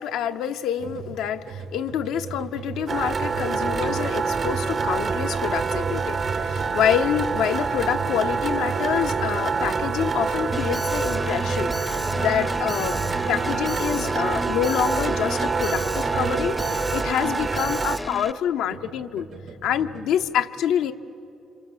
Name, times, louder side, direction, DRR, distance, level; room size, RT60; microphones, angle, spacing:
voice 1, 0.0-13.0 13.3-19.3 19.6-20.9, left 9 dB, 90° left, 7 dB, 0.8 m, -27 dB
sound 1, 0.8-17.2 18.2-20.1, right 4 dB, 85° right, 3.8 m, -38 dB
sound 2, 2.9-18.0, right 5 dB, 45° right, 0.8 m, -26 dB
Alarm, 10.5-18.3, left 1 dB, 10° left, 0.6 m, -33 dB
28.0 x 26.0 x 7.4 m, 2.8 s
cardioid pair, 90°, 0 cm